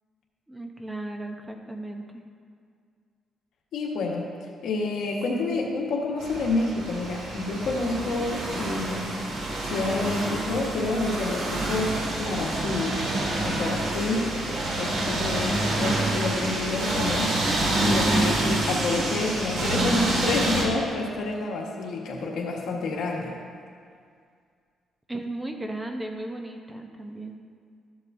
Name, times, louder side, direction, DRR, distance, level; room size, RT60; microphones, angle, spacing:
voice 1, 0.5-2.2 25.1-27.4, right 1 dB, 10° right, 4 dB, 0.8 m, -35 dB
voice 2, 3.7-4.2 4.6-9.3 9.6-13.2 13.4-23.3, left 3 dB, 75° left, -1 dB, 1.4 m, -29 dB
sound 1, 6.2-20.6, right 2 dB, 65° right, 1.9 m, -27 dB
13.5 x 7.5 x 2.7 m, 2.2 s
cardioid pair, 100°, 0 cm